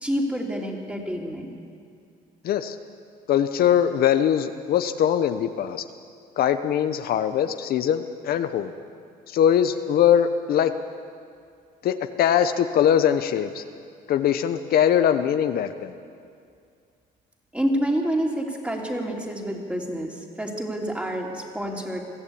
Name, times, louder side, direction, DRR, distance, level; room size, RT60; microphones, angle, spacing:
voice 1, 0.0-1.5 17.5-22.0, equal, 5° right, 0 dB, 3.1 m, -28 dB
voice 2, 2.4-2.8 3.3-5.8 6.4-8.7 9.3-10.7 11.8-13.6 14.1-15.9, left 9 dB, 65° left, 9 dB, 0.9 m, -21 dB
22.5 x 14.5 x 8.6 m, 2.3 s
cardioid pair, 110°, 17 cm